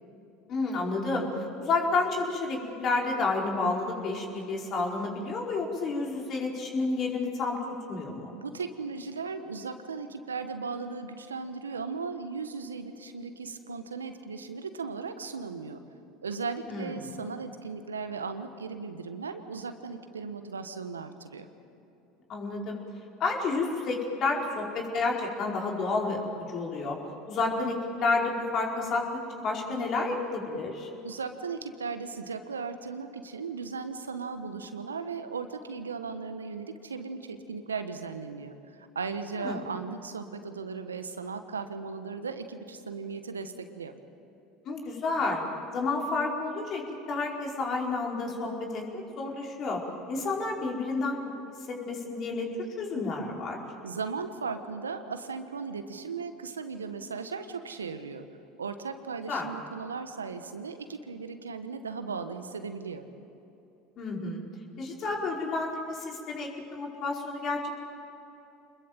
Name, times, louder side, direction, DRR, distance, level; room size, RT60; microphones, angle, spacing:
voice 1, 0.5-1.3 1.6-7.6 7.9-8.3 16.7-17.1 22.3-22.8 23.2-26.2 26.5-27.0 27.3-29.1 29.3-30.9 39.4-39.6 44.6-45.4 45.7-49.8 50.1-51.2 51.7-52.5 52.8-53.6 59.3-59.5 64.0-64.4 64.8-67.7, left 3 dB, 45° left, 0 dB, 4.8 m, -30 dB
voice 2, 8.3-15.8 16.2-21.5 31.0-43.9 53.8-58.3 58.6-63.0, right 5 dB, 90° right, 9 dB, 1.3 m, -37 dB
27.0 x 21.5 x 7.6 m, 3.0 s
hypercardioid pair, 75°, 0 cm